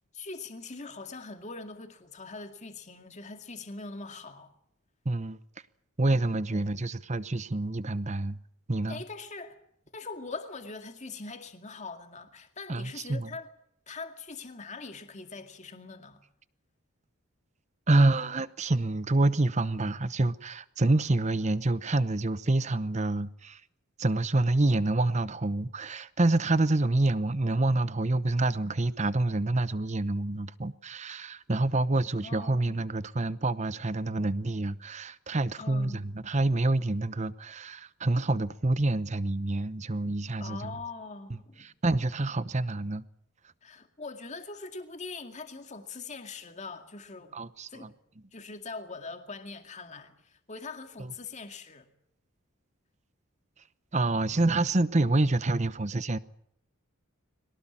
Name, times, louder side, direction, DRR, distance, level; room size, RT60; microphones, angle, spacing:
voice 1, 0.1-4.5 6.5-6.7 8.9-9.6 9.9-13.5 13.9-16.2 32.2-32.8 35.6-36.0 40.0-41.7 43.6-47.4 47.7-48.0 48.3-51.9, left 3 dB, 35° left, 2.3 m, -42 dB
voice 2, 5.0-5.4 6.0-8.4 8.7-9.0 12.7-13.3 17.9-23.6 24.0-40.7 41.3-43.0 47.3-47.9 51.0-51.1 53.9-56.2, right 2 dB, 35° right, 0.8 m, -27 dB
23.0 x 18.5 x 8.8 m
head